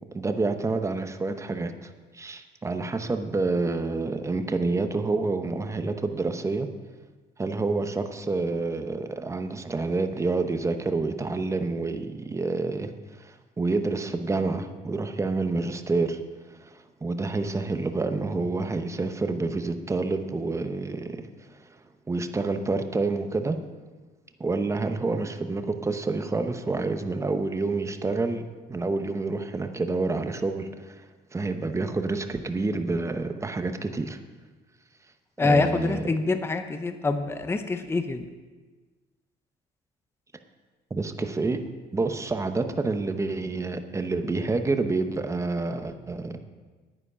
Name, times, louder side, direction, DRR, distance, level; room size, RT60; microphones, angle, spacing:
voice 1, 0.1-6.7 7.4-21.8 22.1-23.6 24.4-34.2 35.4-36.1 40.9-41.6 41.9-46.4, right 3 dB, 15° right, 8 dB, 0.8 m, -28 dB
voice 2, 35.4-38.2, left 3 dB, 15° left, 8 dB, 0.7 m, -25 dB
9.8 x 9.7 x 5.7 m, 1.3 s
cardioid pair, 110°, 17 cm